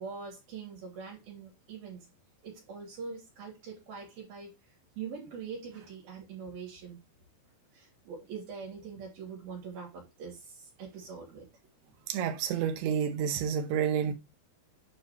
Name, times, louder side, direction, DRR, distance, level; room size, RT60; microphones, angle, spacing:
voice 1, 0.0-2.1 2.4-4.5 5.0-7.0 7.7-11.5, right 5 dB, 60° right, 4.6 m, -43 dB
voice 2, 12.1-14.1, right 8 dB, 80° right, 2.8 m, -29 dB
8.9 x 4.8 x 3.0 m
omnidirectional pair, 4.9 m